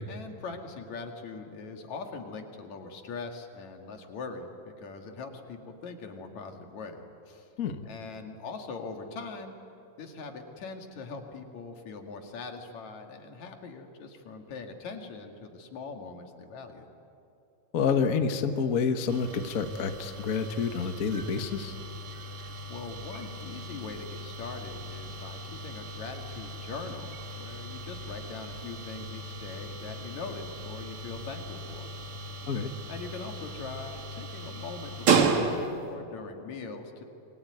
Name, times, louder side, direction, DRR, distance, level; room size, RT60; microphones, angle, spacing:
voice 1, 0.1-7.5 7.9-9.6 10.0-16.9 22.7-31.9 32.2-32.4 32.9-37.0, left 4 dB, 75° left, 4 dB, 3.4 m, -42 dB
voice 2, 17.7-21.7 32.5-32.7, left 6 dB, 50° left, 7 dB, 1.0 m, -28 dB
sound 1, 19.1-35.9, right 4 dB, 50° right, 2.4 m, -34 dB
27.5 x 22.5 x 9.6 m, 2.8 s
omnidirectional pair, 3.3 m